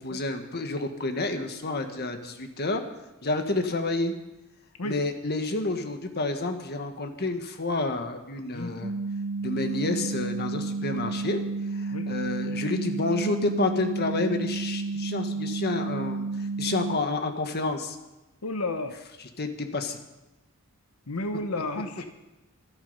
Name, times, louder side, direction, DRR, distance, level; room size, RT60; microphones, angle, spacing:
voice 1, 0.0-2.8 3.2-4.1 4.8-8.9 9.4-11.4 11.7-16.3 16.6-18.0 19.4-20.0, left 2 dB, 50° left, 6 dB, 1.5 m, -29 dB
sound 1, 8.8-17.0, right 3 dB, 50° right, 0.7 m, -31 dB
voice 2, 18.4-18.9 21.1-22.1, left 2 dB, 85° left, 6 dB, 1.1 m, -32 dB
24.5 x 8.7 x 5.6 m, 1.0 s
head